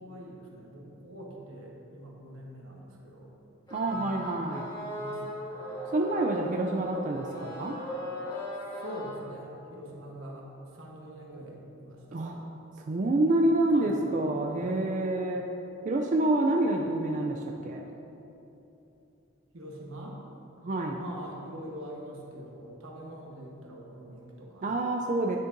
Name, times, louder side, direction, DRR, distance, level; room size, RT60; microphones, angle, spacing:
voice 1, 0.0-3.3 3.9-4.1 4.6-5.4 8.8-10.5 10.7-12.4 13.6-14.0 14.5-14.8 19.5-20.2 21.0-24.8, equal, 85° right, -1 dB, 1.2 m, -44 dB
sound 1, 3.7-9.1, equal, 20° left, 1.5 m, -38 dB
voice 2, 3.7-4.7 5.9-7.8 12.1-12.4 12.8-15.4 15.8-17.8 20.6-21.0 24.6-25.4, right 2 dB, 40° right, 1 dB, 0.3 m, -27 dB
10.0 x 6.4 x 2.6 m, 3.0 s
head